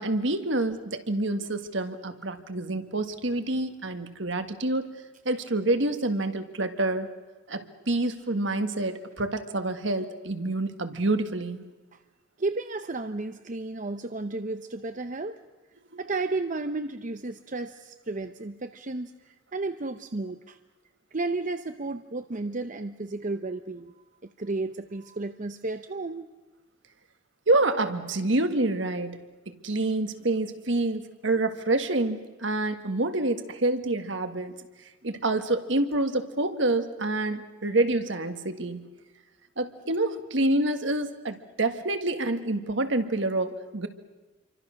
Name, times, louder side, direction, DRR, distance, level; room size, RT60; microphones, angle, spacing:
voice 1, 0.0-4.9 5.3-7.1 7.5-11.7 15.9-16.0 27.5-34.5 34.8-38.9 39.6-43.9, right 2 dB, 65° right, 8 dB, 1.8 m, -27 dB
voice 2, 12.4-15.4 16.0-19.1 19.5-20.6 21.1-23.9 24.4-26.3, right 3 dB, 40° right, 9 dB, 0.8 m, -32 dB
28.0 x 24.5 x 6.5 m, 1.2 s
head